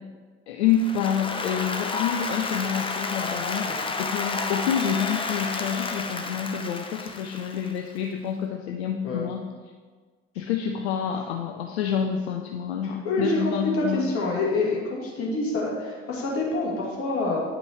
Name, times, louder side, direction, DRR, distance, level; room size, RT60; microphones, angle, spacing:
voice 1, 0.5-9.4 10.4-14.1, left 8 dB, 70° left, 2 dB, 0.5 m, -28 dB
Applause, 0.7-7.9, left 3 dB, 15° left, 0.6 m, -31 dB
voice 2, 12.8-17.4, left 2 dB, 40° left, -5 dB, 2.2 m, -27 dB
9.6 x 5.3 x 3.0 m, 1.5 s
figure-of-eight pair, 50°, 33 cm